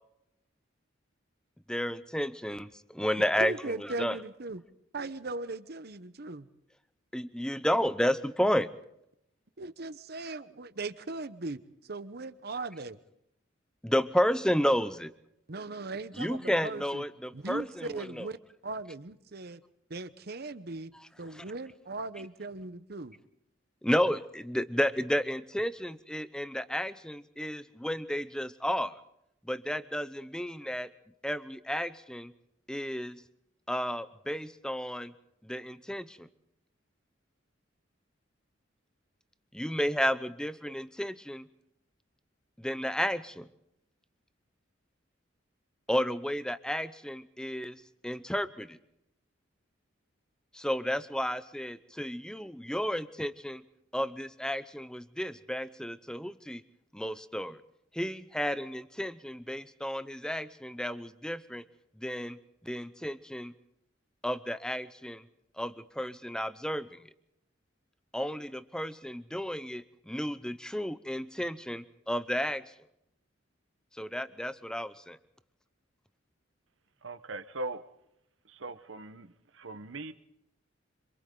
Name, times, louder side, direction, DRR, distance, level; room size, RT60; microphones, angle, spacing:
voice 1, 1.7-4.2 7.1-8.7 13.8-15.1 16.1-18.3 21.3-21.4 23.8-29.0 29.4-30.9 31.2-32.3 32.7-33.2 33.7-35.1 35.4-36.3 39.5-41.5 42.6-43.5 45.9-48.8 50.5-53.6 53.9-56.6 56.9-57.6 57.9-61.6 62.0-63.5 64.2-65.2 65.6-67.1 68.1-72.6 73.9-75.2, equal, 5° left, 13 dB, 0.7 m, -32 dB
voice 2, 3.4-4.6 4.9-6.5 9.6-13.0 15.5-17.0 17.3-18.4 18.6-19.6 19.9-20.9 21.2-23.2, right 3 dB, 55° right, 13 dB, 1.0 m, -38 dB
voice 3, 77.0-77.8 78.4-80.1, right 2 dB, 80° right, 11 dB, 1.1 m, -40 dB
27.0 x 26.0 x 3.9 m, 0.78 s
head